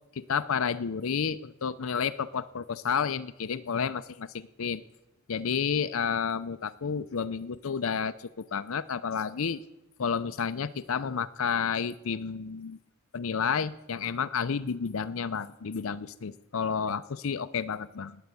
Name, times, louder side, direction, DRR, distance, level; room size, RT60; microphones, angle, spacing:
voice 1, 0.2-4.8 5.3-9.6 10.0-12.8 13.1-18.2, left 6 dB, 70° left, 12 dB, 0.6 m, -31 dB
19.0 x 9.1 x 8.3 m, 0.97 s
head